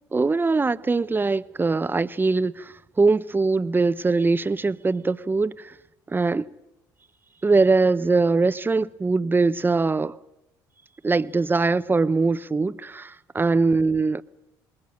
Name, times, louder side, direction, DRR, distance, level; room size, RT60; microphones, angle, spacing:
voice 1, 0.1-5.7 6.1-6.5 7.4-10.2 11.0-14.2, right 3 dB, 20° right, 0.9 m, -22 dB
27.5 x 20.5 x 6.5 m
hypercardioid pair, 65°, 10 cm